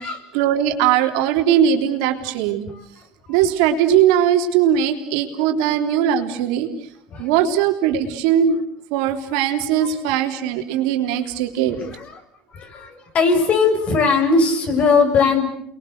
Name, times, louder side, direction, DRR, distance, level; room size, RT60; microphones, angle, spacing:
voice 1, 0.0-2.6 3.3-6.7 7.2-8.6 8.9-11.8, right 9 dB, 85° right, 5 dB, 3.5 m, -19 dB
voice 2, 12.5-15.5, left 4 dB, 50° left, 5 dB, 7.1 m, -18 dB
29.5 x 22.5 x 8.0 m, 0.72 s
supercardioid pair, 100°, 3 cm